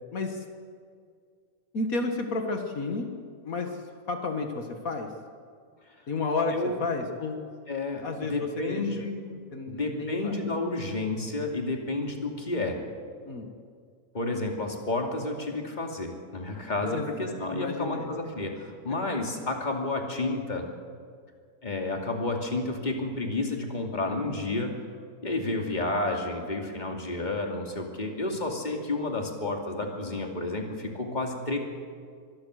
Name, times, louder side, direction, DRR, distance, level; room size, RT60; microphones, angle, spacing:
voice 1, 0.1-0.4 1.7-3.1 3.4-3.8 4.1-5.1 6.1-7.4 8.0-9.1 9.5-10.5 13.3-13.5 16.8-18.1, left 3 dB, 80° left, 4 dB, 2.1 m, -32 dB
voice 2, 6.5-6.9 7.7-12.8 14.1-20.7 21.6-24.8 25.2-31.6, left 2 dB, 30° left, 2 dB, 2.8 m, -31 dB
25.0 x 20.0 x 6.6 m, 2.1 s
omnidirectional pair, 1.5 m